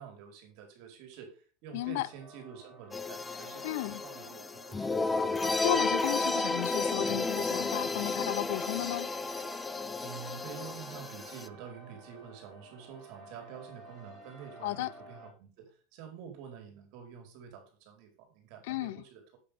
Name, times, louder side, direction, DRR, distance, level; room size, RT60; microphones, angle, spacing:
voice 1, 0.0-5.0 10.0-19.4, right 8 dB, 60° right, 4.5 m, -48 dB
voice 2, 1.7-2.1 3.6-4.0 5.4-9.1 14.6-14.9 18.6-19.0, left 17 dB, 70° left, 0.6 m, -34 dB
sound 1, 1.8-15.3, right 1 dB, 30° right, 4.3 m, -54 dB
sound 2, 2.9-11.5, left 3 dB, 15° left, 0.7 m, -32 dB
8.9 x 8.7 x 3.6 m
supercardioid pair, 125°, 0 cm